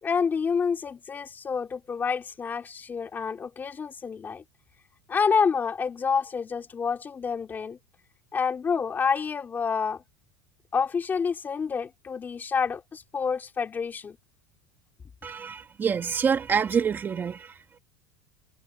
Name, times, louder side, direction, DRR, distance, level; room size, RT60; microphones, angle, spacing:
voice 1, 0.0-4.4 5.1-7.8 8.3-10.0 10.7-14.2, left 6 dB, 20° left, 3.5 m, -28 dB
voice 2, 15.2-17.8, right 6 dB, 20° right, 2.2 m, -27 dB
supercardioid pair, 160°, 10 cm